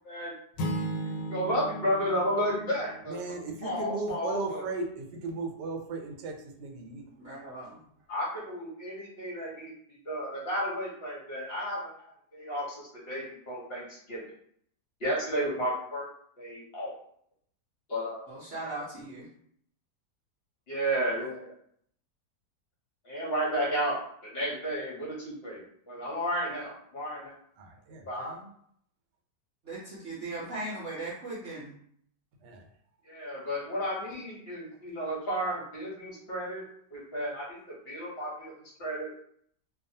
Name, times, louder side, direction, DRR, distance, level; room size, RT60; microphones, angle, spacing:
sound 1, 0.6-3.4, right 1 dB, 85° left, 1.2 m, -36 dB
voice 1, 1.3-3.2 3.6-4.6 8.1-14.2 15.0-16.1 16.4-16.9 17.9-18.3 20.7-21.5 23.0-27.3 28.1-28.3 33.0-37.6 37.8-38.5 38.8-39.1, equal, 50° left, -5 dB, 0.8 m, -33 dB
voice 2, 3.1-7.0 27.6-28.5 32.4-32.7, right 3 dB, 80° right, 2 dB, 1.2 m, -36 dB
voice 3, 7.2-7.8 18.3-19.3 29.6-31.7, right 2 dB, 55° right, -8 dB, 0.9 m, -38 dB
2.6 x 2.3 x 2.6 m, 0.65 s
omnidirectional pair, 1.8 m